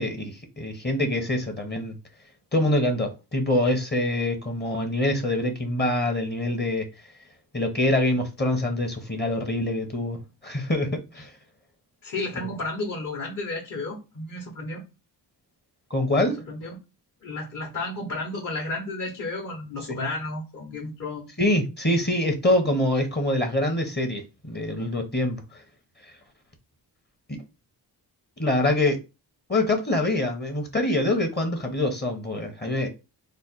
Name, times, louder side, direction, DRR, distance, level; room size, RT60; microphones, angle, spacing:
voice 1, 0.0-1.9 2.5-6.9 7.5-11.3 15.9-16.4 19.9-20.0 21.4-25.4 27.3-27.4 28.4-29.0 29.5-32.9, left 1 dB, 25° left, 0.9 m, -25 dB
voice 2, 12.0-14.8 16.2-16.8 17.2-21.3, left 2 dB, 45° left, 1.1 m, -32 dB
3.2 x 2.1 x 4.0 m
cardioid pair, 85°, 41 cm